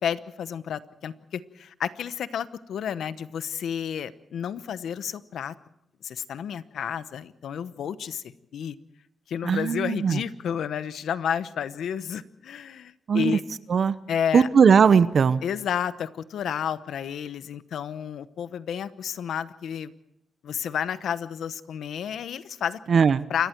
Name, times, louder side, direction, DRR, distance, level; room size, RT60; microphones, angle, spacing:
voice 1, 0.0-5.5 6.0-8.8 9.3-13.4 14.1-14.5 15.4-19.9 20.4-22.8 23.3-23.5, left 8 dB, 85° left, 14 dB, 0.9 m, -31 dB
voice 2, 9.4-10.2 13.1-13.4 13.7-14.0 14.3-15.4 22.9-23.3, right 6 dB, 55° right, 14 dB, 0.8 m, -19 dB
28.0 x 22.0 x 4.6 m, 0.80 s
cardioid pair, 105°, 0 cm